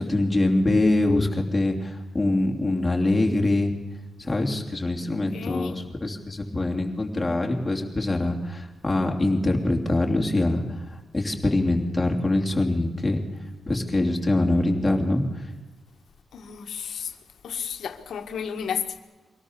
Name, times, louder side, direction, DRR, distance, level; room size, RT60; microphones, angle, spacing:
voice 1, 0.0-3.7 4.2-13.2 13.7-15.4, left 2 dB, 15° left, 3.0 m, -24 dB
voice 2, 5.0-5.8 16.3-17.2 17.4-19.0, left 7 dB, 80° left, 1.7 m, -33 dB
23.5 x 18.0 x 6.8 m
wide cardioid pair, 140°, 0 cm